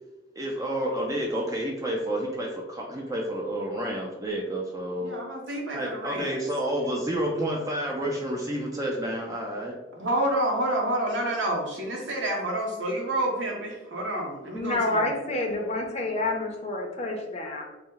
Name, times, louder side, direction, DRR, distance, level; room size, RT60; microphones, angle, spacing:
voice 1, 0.4-5.1 5.7-9.7, right 1 dB, 20° right, -1 dB, 0.4 m, -30 dB
voice 2, 5.0-6.4 10.0-15.1, right 1 dB, 90° right, -1 dB, 1.0 m, -29 dB
voice 3, 14.5-17.7, left 2 dB, 35° left, 1 dB, 0.6 m, -28 dB
4.1 x 2.1 x 3.8 m, 1.1 s
head